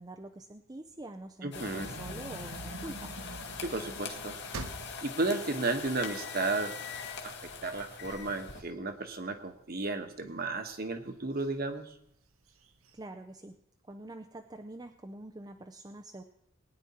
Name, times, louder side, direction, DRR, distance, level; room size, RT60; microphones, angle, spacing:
voice 1, 0.0-3.1 12.9-13.6 13.9-16.2, right 2 dB, 20° right, 5 dB, 0.5 m, -45 dB
voice 2, 1.4-1.9 3.6-4.4 5.0-6.8 7.2-11.9, right 3 dB, 45° right, 7 dB, 1.3 m, -33 dB
sound 1, 1.5-8.6, left 5 dB, 55° left, 1.6 m, -42 dB
sound 2, 1.5-6.7 7.2-7.3 7.6-9.7 10.2-10.8 11.4-11.5 11.8-11.9 12.3-12.9, right 2 dB, 80° right, 1.1 m, -45 dB
20.5 x 9.8 x 4.3 m, 0.74 s
head